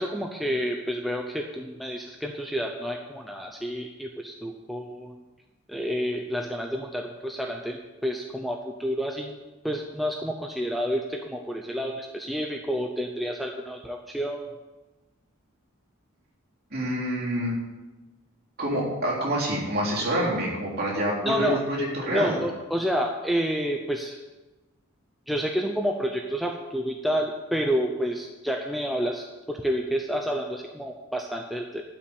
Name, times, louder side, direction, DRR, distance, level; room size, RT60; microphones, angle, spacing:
voice 1, 0.0-5.1 5.7-9.4 9.6-14.6 21.2-21.6 22.1-24.2 25.3-31.8, equal, ahead, 1 dB, 0.6 m, -29 dB
voice 2, 16.7-17.6 18.6-22.4, right 1 dB, 45° right, -5 dB, 3.7 m, -27 dB
12.0 x 6.0 x 8.6 m, 1.1 s
head